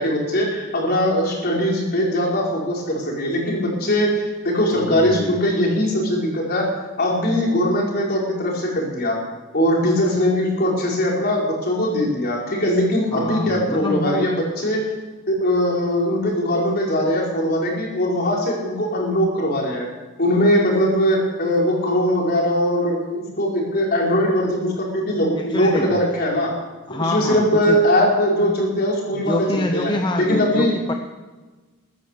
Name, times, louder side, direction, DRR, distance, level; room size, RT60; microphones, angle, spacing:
voice 1, 0.0-9.2 9.5-14.8 15.3-19.9 20.2-26.5 27.0-29.9 30.2-30.7, equal, 45° left, -2 dB, 4.7 m, -21 dB
voice 2, 4.8-5.4 13.1-14.3 25.4-26.0 26.9-27.8 29.2-30.9, left 1 dB, 20° left, 4 dB, 0.8 m, -26 dB
14.5 x 13.0 x 6.6 m, 1.3 s
head